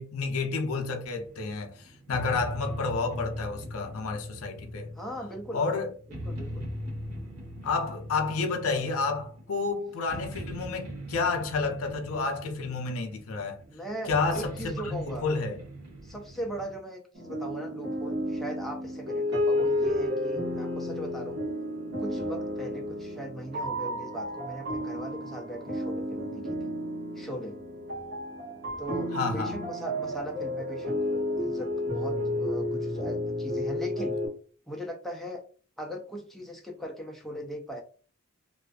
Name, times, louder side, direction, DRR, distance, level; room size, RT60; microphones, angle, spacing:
voice 1, 0.0-4.9 5.5-5.9 7.6-13.6 14.1-15.6 29.1-29.5, left 4 dB, 70° left, 0.5 m, -30 dB
sound 1, 1.2-16.8, equal, 75° right, 1.0 m, -40 dB
voice 2, 5.0-5.6 6.1-6.7 13.7-15.2 16.0-21.4 22.0-26.7 27.2-27.6 28.8-31.0 31.4-34.2 34.7-35.4 35.8-37.8, right 1 dB, ahead, 0.4 m, -39 dB
sound 2, 17.1-34.3, left 1 dB, 50° right, 1.0 m, -31 dB
2.4 x 2.4 x 2.2 m
head